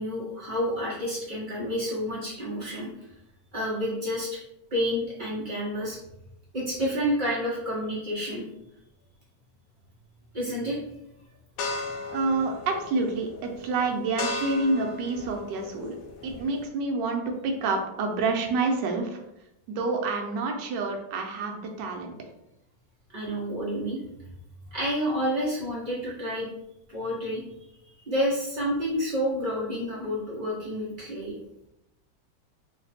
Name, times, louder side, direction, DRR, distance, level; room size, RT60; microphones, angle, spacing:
voice 1, 0.0-2.9 3.5-4.4 4.7-6.0 6.5-8.4 10.3-10.8 23.1-24.0 24.7-26.5 26.9-27.4 28.1-31.3, equal, 55° right, -6 dB, 0.5 m, -29 dB
sound 1, 11.6-16.7, left 3 dB, 75° left, 1.0 m, -36 dB
voice 2, 12.1-16.0 16.2-19.2 19.7-22.1, right 3 dB, 70° right, 3 dB, 1.2 m, -28 dB
3.3 x 2.2 x 4.0 m, 0.85 s
omnidirectional pair, 2.2 m